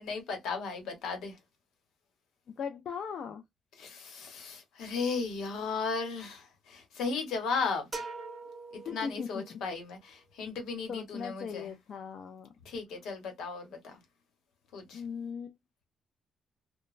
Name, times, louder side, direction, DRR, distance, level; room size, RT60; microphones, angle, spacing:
voice 1, 0.0-1.4 3.8-7.9 8.8-11.7 12.6-13.9 14.7-15.0, left 4 dB, 85° left, 1.0 m, -35 dB
voice 2, 2.5-3.4 8.8-9.6 10.9-12.5 14.9-15.6, left 6 dB, 60° left, 0.4 m, -39 dB
sound 1, 7.9-9.7, right 3 dB, 20° right, 0.7 m, -42 dB
2.9 x 2.1 x 2.4 m
cardioid pair, 110°, 0 cm